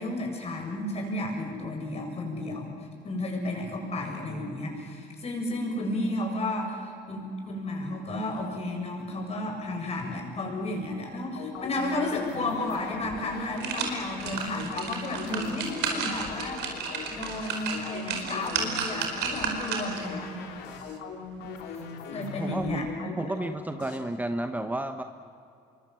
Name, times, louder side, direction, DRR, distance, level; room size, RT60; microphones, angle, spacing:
voice 1, 0.0-16.6 17.1-20.4 21.7-21.8 22.1-23.1, left 1 dB, 40° left, 1 dB, 7.6 m, -32 dB
sound 1, 11.4-24.0, left 5 dB, 85° left, 3.4 m, -40 dB
sound 2, 12.7-12.8 13.2-20.1 20.5-20.6, right 6 dB, 85° right, 4.9 m, -33 dB
voice 2, 22.4-22.9 23.2-25.0, right 1 dB, 10° right, 7 dB, 1.1 m, -32 dB
27.5 x 23.5 x 7.8 m, 2.5 s
cardioid pair, 110°, 17 cm